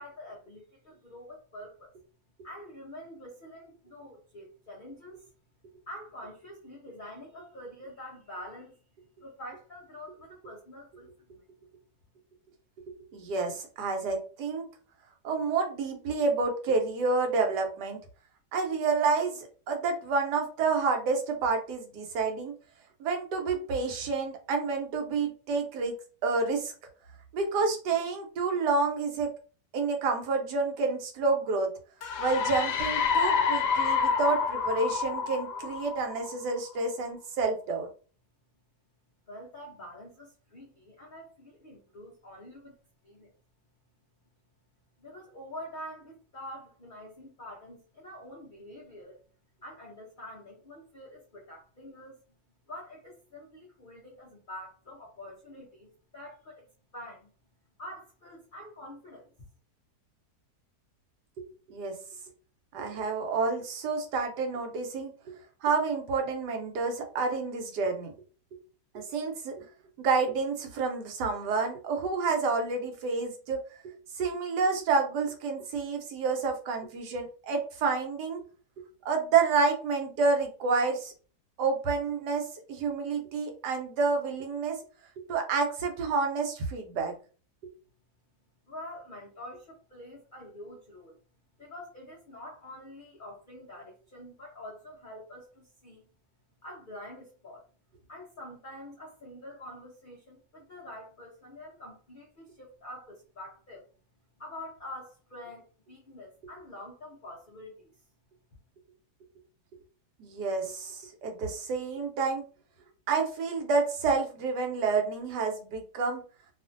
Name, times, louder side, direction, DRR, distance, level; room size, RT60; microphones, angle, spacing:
voice 1, 0.0-1.9 2.4-5.3 5.9-8.8 9.2-11.4 39.3-42.7 43.0-43.3 45.0-49.2 49.6-52.2 52.7-57.3 57.8-59.3 88.7-91.2 91.6-96.0 96.6-97.6 98.1-103.8 104.4-107.9, left 1 dB, 60° left, -4 dB, 0.5 m, -46 dB
voice 2, 13.1-14.7 15.2-18.0 18.5-22.5 23.0-26.0 26.2-26.7 27.3-29.3 29.7-31.7 32.2-37.9 61.4-61.9 62.7-65.3 65.6-68.1 68.9-69.6 70.0-78.4 79.0-81.1 81.6-84.8 85.3-87.1 110.2-112.4 113.1-116.2, right 4 dB, 80° right, 4 dB, 1.3 m, -29 dB
sound 1, 32.0-36.6, left 6 dB, 80° left, 1.1 m, -28 dB
2.7 x 2.4 x 2.5 m, 0.39 s
omnidirectional pair, 1.7 m